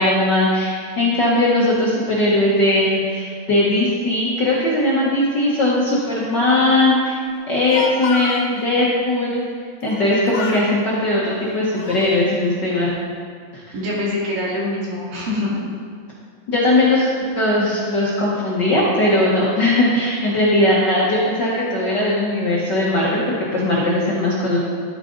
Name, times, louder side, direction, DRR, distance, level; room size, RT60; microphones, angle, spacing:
voice 1, 0.0-7.2 7.5-9.4 9.8-12.9 13.5-13.6 16.5-24.6, left 1 dB, 50° left, -6 dB, 1.4 m, -19 dB
Speech, 7.4-8.5 9.8-10.1 10.3-10.7 11.4-12.2, left 5 dB, 80° left, 2.4 m, -30 dB
voice 2, 13.7-15.6, left 1 dB, 85° right, -5 dB, 4.2 m, -24 dB
12.0 x 9.0 x 3.9 m, 2.1 s
omnidirectional pair, 3.8 m